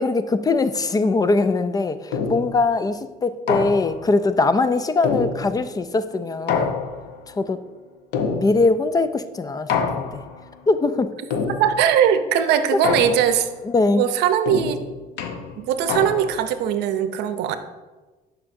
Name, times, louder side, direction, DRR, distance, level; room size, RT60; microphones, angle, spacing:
voice 1, 0.0-6.7 7.3-7.6 8.3-10.2 10.7-11.1 12.7-12.8 13.6-14.0, left 3 dB, 20° left, 12 dB, 0.4 m, -21 dB
sound 1, 2.1-2.7 3.5-4.1 5.0-5.8 6.5-7.3 8.1-8.8 9.7-10.4 11.3-12.0 12.8-13.6 14.5-16.5, left 5 dB, 85° left, 0.7 m, -26 dB
voice 2, 11.6-13.5 14.0-14.8 15.5-17.6, right 9 dB, 85° right, 10 dB, 0.6 m, -20 dB
11.0 x 5.8 x 2.6 m, 1.2 s
cardioid pair, 110°, 17 cm